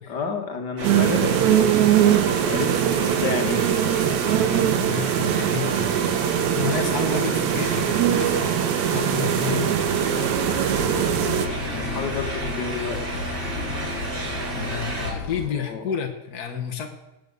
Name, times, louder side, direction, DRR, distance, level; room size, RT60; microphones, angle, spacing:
voice 1, 0.1-1.8 2.4-4.2 9.4-9.7 11.7-13.0 15.5-15.8, left 5 dB, 45° left, 4 dB, 1.6 m, -31 dB
sound 1, 0.8-15.1, right 2 dB, 25° right, 4.2 m, -31 dB
sound 2, 0.8-11.5, right 10 dB, 70° right, 1.9 m, -22 dB
voice 2, 4.4-5.8 6.5-8.6 8.9-10.3 14.5-16.9, left 8 dB, 65° left, 2 dB, 0.9 m, -31 dB
sound 3, 10.3-15.5, left 5 dB, 90° left, 3.0 m, -34 dB
18.5 x 8.4 x 6.7 m, 1.0 s
omnidirectional pair, 3.7 m